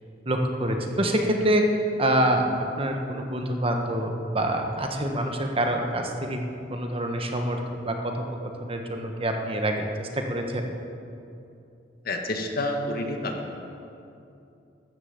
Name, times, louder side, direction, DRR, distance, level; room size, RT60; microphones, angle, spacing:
voice 1, 0.2-1.7 2.0-6.4 6.7-8.2 8.6-10.7, right 1 dB, 30° right, 3 dB, 1.3 m, -26 dB
voice 2, 12.0-13.4, left 1 dB, 55° left, 3 dB, 1.6 m, -29 dB
13.5 x 11.5 x 7.2 m, 2.7 s
head